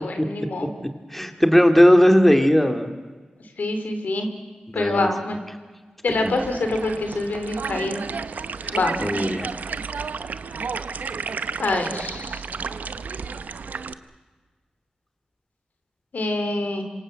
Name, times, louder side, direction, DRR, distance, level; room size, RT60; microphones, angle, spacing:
voice 1, 0.0-0.7 3.6-4.3 4.7-5.4 6.0-8.0 8.7-9.0 11.6-12.4 16.1-16.8, left 2 dB, 85° left, 6 dB, 3.2 m, -25 dB
voice 2, 0.6-2.9 4.7-5.1 6.2-6.3 8.6-9.5, equal, 5° left, 6 dB, 2.4 m, -18 dB
sound 1, 6.1-13.9, right 5 dB, 90° right, 0.8 m, -32 dB
27.0 x 24.5 x 7.6 m, 1.4 s
cardioid pair, 60°, 3 cm